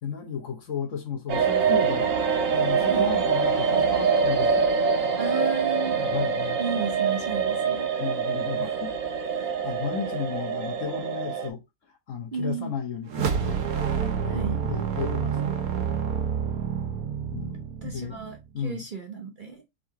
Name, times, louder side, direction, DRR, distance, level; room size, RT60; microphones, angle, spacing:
voice 1, 0.0-2.1 2.5-4.7 4.9-5.1 5.8-6.6 8.0-9.0 9.3-11.6 12.1-13.6 14.2-15.5 17.3-18.2 18.5-18.8, left 6 dB, 60° left, 1.4 m, -34 dB
sound 1, 1.3-11.5, right 5 dB, 65° right, 1.2 m, -25 dB
voice 2, 5.2-6.0 6.6-7.9 12.3-12.7 14.3-14.6 17.8-18.4 18.6-19.6, right 6 dB, 45° right, 0.8 m, -33 dB
sound 2, 13.1-18.5, right 7 dB, 85° right, 1.3 m, -28 dB
3.9 x 2.8 x 4.6 m
omnidirectional pair, 1.5 m